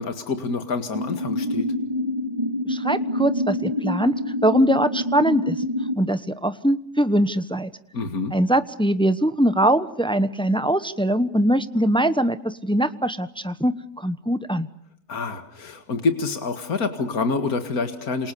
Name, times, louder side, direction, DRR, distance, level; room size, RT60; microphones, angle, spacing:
voice 1, 0.0-1.7 7.9-8.3 15.1-18.3, left 4 dB, 70° left, 8 dB, 2.5 m, -27 dB
sound 1, 0.9-6.0, left 1 dB, 20° right, 1.7 m, -26 dB
voice 2, 2.7-4.1 4.4-5.6 6.0-7.7 8.3-14.7, right 1 dB, 5° left, 12 dB, 0.8 m, -22 dB
28.0 x 27.5 x 6.9 m, 0.65 s
omnidirectional pair, 1.6 m